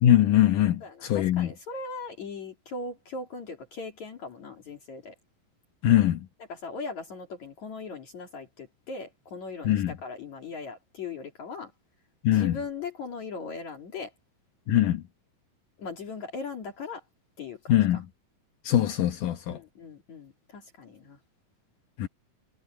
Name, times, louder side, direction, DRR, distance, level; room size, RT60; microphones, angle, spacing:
voice 1, 0.0-1.5 5.8-6.2 9.6-9.9 12.2-12.6 14.7-15.0 17.7-18.0 18.7-19.6 22.0-22.1, left 12 dB, 70° left, 2.5 m, -22 dB
voice 2, 0.8-5.1 6.5-11.7 12.3-14.1 15.8-17.0 17.4-18.0 19.5-21.2, left 4 dB, 55° left, 4.0 m, -39 dB
omnidirectional pair, 4.0 m